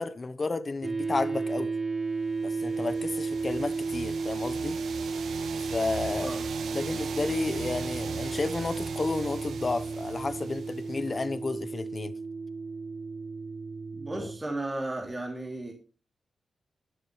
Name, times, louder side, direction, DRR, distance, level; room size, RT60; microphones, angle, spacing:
voice 1, 0.0-1.7 2.4-4.8 5.7-6.3 6.7-12.1 14.1-14.3, left 3 dB, 40° left, 1.1 m, -32 dB
sound 1, 0.8-14.4, right 4 dB, 50° right, 3.0 m, -33 dB
sound 2, 2.5-11.3, right 6 dB, 85° right, 1.6 m, -40 dB
voice 2, 13.9-15.7, right 2 dB, 25° right, 3.3 m, -34 dB
22.5 x 7.6 x 3.3 m
cardioid pair, 65°, 0 cm